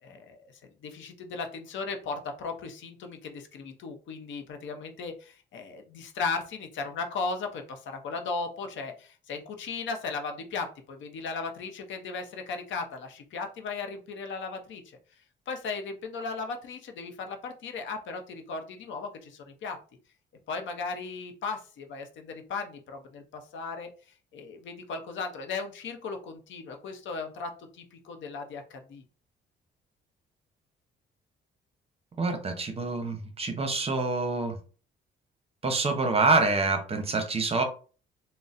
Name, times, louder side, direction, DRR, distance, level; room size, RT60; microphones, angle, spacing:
voice 1, 0.0-15.0 15.5-19.8 20.5-23.9 24.3-29.0, left 4 dB, 70° left, 5 dB, 0.6 m, -36 dB
voice 2, 32.2-34.6 35.6-37.6, right 3 dB, 30° right, 6 dB, 0.7 m, -26 dB
3.9 x 2.0 x 2.4 m, 0.38 s
cardioid pair, 90°, 20 cm